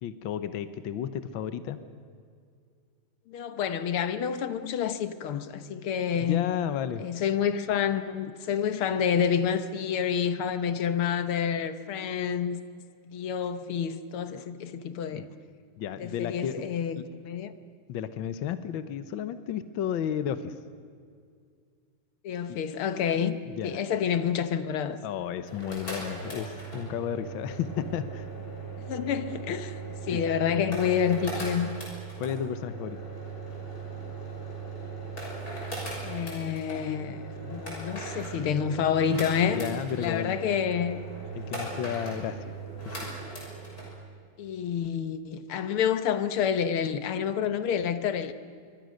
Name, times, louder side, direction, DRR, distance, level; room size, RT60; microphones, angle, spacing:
voice 1, 0.0-1.8 6.2-7.0 15.1-15.3 15.8-16.6 17.0-17.1 17.9-20.5 22.5-22.6 23.5-23.8 25.0-28.3 30.1-30.2 32.2-33.0 39.5-40.4 41.3-42.5 42.8-43.1, left 9 dB, 70° left, 1.7 m, -33 dB
voice 2, 3.3-6.5 7.0-12.6 13.1-15.3 16.0-17.5 22.2-23.4 23.6-25.0 28.9-29.8 30.1-31.7 36.0-39.6 39.9-41.0 44.4-48.3, left 8 dB, 85° left, 2.0 m, -28 dB
sound 1, 25.4-43.9, right 3 dB, 45° left, 6.8 m, -38 dB
26.5 x 24.0 x 6.5 m
omnidirectional pair, 2.3 m